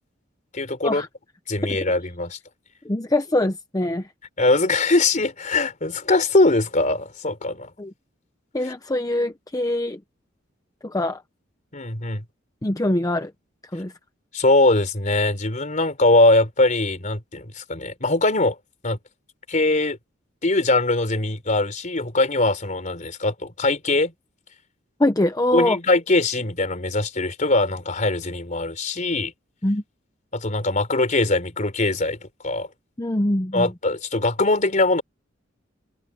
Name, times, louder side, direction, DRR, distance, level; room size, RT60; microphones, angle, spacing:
voice 1, 0.5-1.0 1.5-2.4 4.4-7.7 11.7-12.2 14.3-18.6 18.8-19.0 19.5-20.0 20.4-24.1 25.5-29.3 30.3-32.2 32.4-32.7 33.5-35.0, left 2 dB, 40° left, 3.8 m, -21 dB
voice 2, 2.8-4.1 7.8-7.9 8.5-10.0 10.8-11.2 12.6-13.3 13.7-13.9 25.0-25.8 29.6-29.8 33.0-33.7, left 1 dB, 20° left, 0.7 m, -23 dB
head